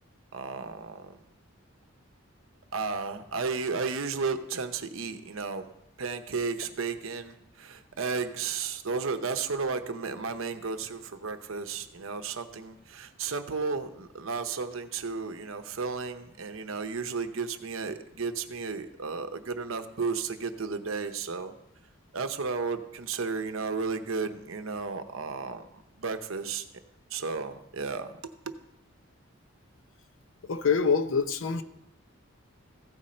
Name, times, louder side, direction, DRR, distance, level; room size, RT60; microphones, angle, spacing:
voice 1, 0.3-1.2 2.7-5.7 6.0-21.5 22.1-26.6 27.1-28.5, right 4 dB, 75° right, 0.7 m, -33 dB
voice 2, 30.5-31.6, left 5 dB, 65° left, 0.6 m, -25 dB
15.5 x 5.1 x 4.3 m
head